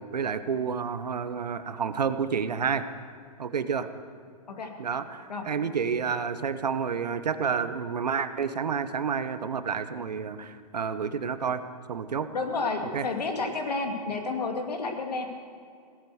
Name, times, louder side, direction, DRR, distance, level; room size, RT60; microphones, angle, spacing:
voice 1, 0.0-2.8 3.4-3.9 4.8-11.6 11.9-12.3 12.9-13.0, right 6 dB, 90° right, 11 dB, 1.0 m, -29 dB
voice 2, 12.3-15.3, left 3 dB, 80° left, 3 dB, 2.5 m, -30 dB
17.0 x 8.7 x 8.0 m, 2.2 s
hypercardioid pair, 130°, 20 cm